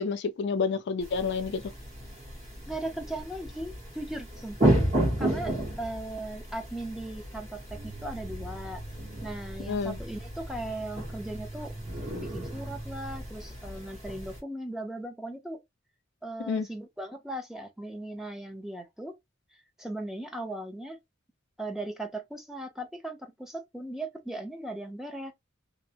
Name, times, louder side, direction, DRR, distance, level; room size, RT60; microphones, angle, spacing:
voice 1, 0.0-1.6 9.7-10.0 16.5-16.7, left 5 dB, 60° left, 0.4 m, -29 dB
sound 1, 1.0-14.4, right 1 dB, 35° right, 1.3 m, -33 dB
voice 2, 2.7-4.7 5.2-8.8 9.2-11.7 12.1-15.6 16.2-19.2 19.5-21.0 21.6-25.3, right 1 dB, ahead, 0.5 m, -38 dB
sound 2, 7.7-13.3, right 2 dB, 50° right, 0.8 m, -44 dB
2.5 x 2.0 x 2.8 m
head